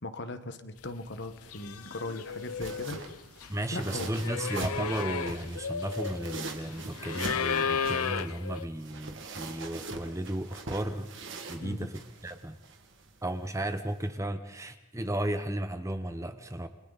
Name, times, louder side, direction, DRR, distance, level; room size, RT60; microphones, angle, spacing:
voice 1, 0.0-3.0 3.7-4.4 11.6-11.8, left 2 dB, 50° left, 9 dB, 1.3 m, -39 dB
sound 1, 1.1-1.2 1.5-8.7, left 6 dB, 80° left, 0.7 m, -34 dB
sound 2, 1.5-14.1, right 3 dB, 55° right, 1.9 m, -43 dB
voice 2, 3.5-11.1 11.5-11.9 12.2-12.6 13.2-16.7, right 1 dB, 15° right, 9 dB, 0.9 m, -34 dB
29.0 x 22.5 x 4.1 m, 0.98 s
head